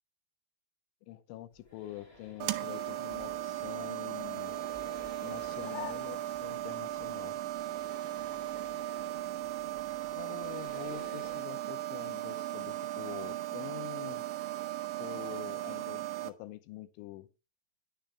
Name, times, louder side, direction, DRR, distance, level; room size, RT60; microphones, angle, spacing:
voice 1, 1.1-4.6 5.2-7.4 10.1-14.3 15.0-17.3, left 14 dB, 80° left, 3.2 m, -46 dB
sound 1, 1.5-11.4, equal, 45° left, 0.5 m, -55 dB
sound 2, 1.8-6.8, left 11 dB, 65° left, 2.5 m, -51 dB
sound 3, 2.4-16.3, right 15 dB, 80° right, 3.1 m, -37 dB
10.5 x 10.5 x 3.4 m
omnidirectional pair, 5.5 m